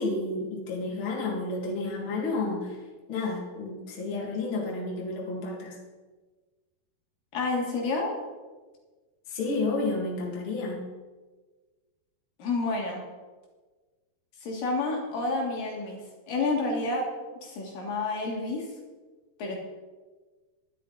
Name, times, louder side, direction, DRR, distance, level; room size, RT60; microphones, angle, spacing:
voice 1, 0.0-2.8 3.1-5.8 9.3-10.9, left 3 dB, 40° left, -2 dB, 2.3 m, -31 dB
voice 2, 7.3-8.2 12.4-13.0 14.4-16.0 16.3-17.1 17.4-18.7 19.4-19.6, left 3 dB, 65° left, -1 dB, 3.3 m, -29 dB
11.5 x 11.5 x 3.9 m, 1.3 s
omnidirectional pair, 4.4 m